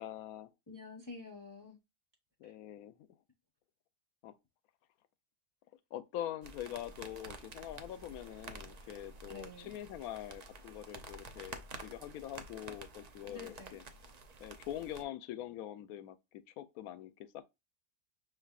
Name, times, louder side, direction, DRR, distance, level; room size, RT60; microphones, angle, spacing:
voice 1, 0.0-0.5 2.4-3.0 4.2-4.3 5.9-13.8 14.4-17.5, left 12 dB, 75° left, 1.0 m, -44 dB
voice 2, 0.7-1.8 2.4-2.5 9.3-9.8 13.3-13.8, left 3 dB, 25° left, 0.5 m, -49 dB
sound 1, 6.4-15.0, right 3 dB, 70° right, 0.3 m, -50 dB
6.2 x 3.3 x 2.4 m
omnidirectional pair, 1.6 m